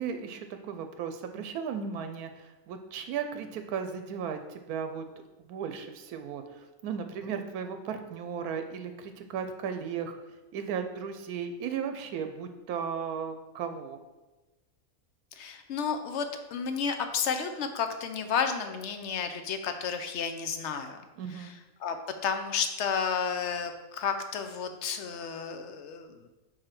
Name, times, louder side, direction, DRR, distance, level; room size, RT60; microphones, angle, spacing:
voice 1, 0.0-5.0 5.4-10.2 10.5-14.0 21.2-21.5, right 7 dB, 85° right, 7 dB, 1.1 m, -35 dB
voice 2, 15.3-21.0 21.3-21.5 21.8-22.0 22.2-26.3, left 6 dB, 60° left, 7 dB, 0.8 m, -32 dB
4.9 x 4.6 x 5.8 m, 1.1 s
omnidirectional pair, 1.6 m